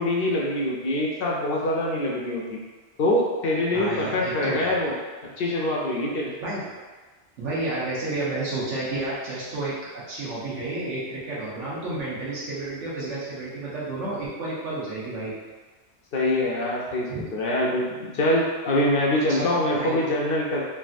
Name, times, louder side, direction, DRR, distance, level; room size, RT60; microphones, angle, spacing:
voice 1, 0.0-2.6 3.0-4.9 5.4-6.3 16.1-20.6, left 1 dB, 60° left, -3 dB, 0.7 m, -24 dB
voice 2, 3.7-4.8 6.4-6.7 7.4-15.3 17.1-17.3 19.3-20.1, right 2 dB, 85° right, -8 dB, 1.2 m, -31 dB
3.3 x 2.6 x 2.5 m, 1.3 s
omnidirectional pair, 1.2 m